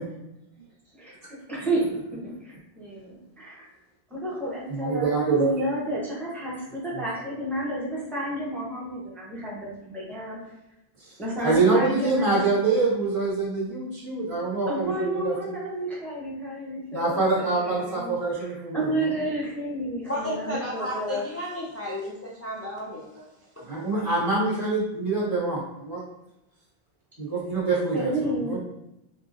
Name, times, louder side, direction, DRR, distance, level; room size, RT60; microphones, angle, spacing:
voice 1, 1.5-1.9 2.2-3.7 4.1-10.4 11.2-12.5 14.7-21.2 27.9-28.6, right 1 dB, ahead, -6 dB, 0.9 m, -31 dB
voice 2, 4.7-5.5 11.4-15.3 16.9-18.9 23.7-26.0 27.2-28.1 28.4-28.6, right 3 dB, 65° right, -9 dB, 1.9 m, -25 dB
voice 3, 20.1-23.6, left 1 dB, 20° left, -5 dB, 0.4 m, -33 dB
4.8 x 2.6 x 2.6 m, 0.88 s
omnidirectional pair, 1.1 m